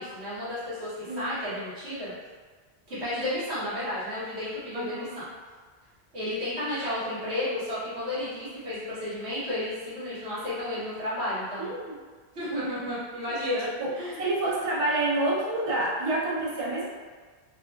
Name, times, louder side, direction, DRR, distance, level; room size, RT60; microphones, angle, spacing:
voice 1, 0.0-2.1 2.9-5.2 6.1-11.7 12.3-13.7 13.9-14.2, left 1 dB, 80° right, -11 dB, 1.4 m, -32 dB
voice 2, 4.7-5.2 11.6-12.0 12.5-12.9 13.6-13.9 14.2-16.9, right 2 dB, 40° right, -6 dB, 0.5 m, -28 dB
2.8 x 2.5 x 2.3 m, 1.5 s
omnidirectional pair, 1.1 m